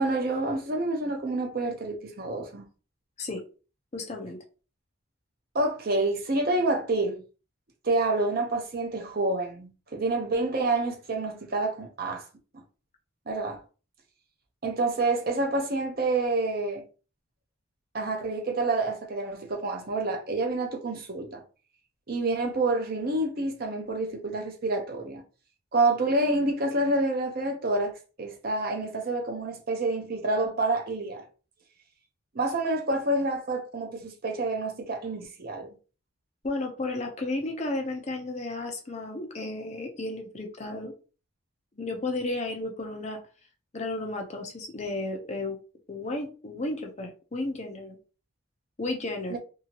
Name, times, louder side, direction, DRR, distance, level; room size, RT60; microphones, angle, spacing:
voice 1, 0.0-2.7 5.5-7.2 7.8-12.2 13.3-13.6 14.6-16.8 17.9-21.4 22.1-25.2 25.7-31.2 32.3-35.7 49.3-49.4, right 2 dB, 45° right, 0.7 m, -28 dB
voice 2, 3.9-4.4 36.4-40.9 41.8-43.2 43.7-45.6 45.9-48.0 48.8-49.4, left 2 dB, 30° left, 0.5 m, -33 dB
2.8 x 2.7 x 2.8 m
head